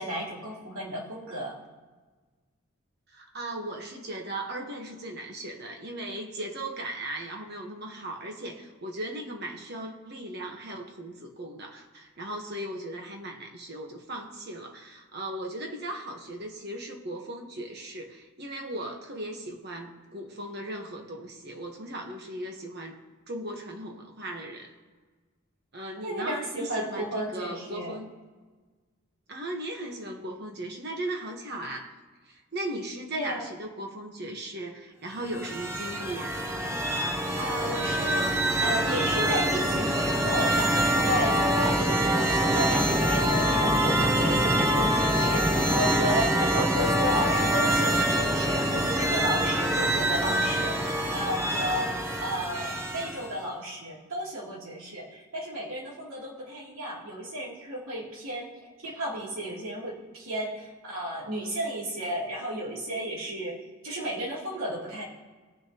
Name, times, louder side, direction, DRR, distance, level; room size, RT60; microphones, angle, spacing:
voice 1, 0.0-1.6 26.0-27.9 33.1-33.5 37.3-58.5 58.8-63.5 63.8-65.0, equal, 75° right, -5 dB, 3.1 m, -33 dB
voice 2, 3.1-23.0 23.3-24.7 25.7-28.1 29.3-31.9 32.3-36.4, right 1 dB, 45° right, 2 dB, 1.3 m, -37 dB
sound 1, 35.2-53.4, equal, 10° right, 0.7 m, -25 dB
18.0 x 6.5 x 3.0 m, 1.4 s
head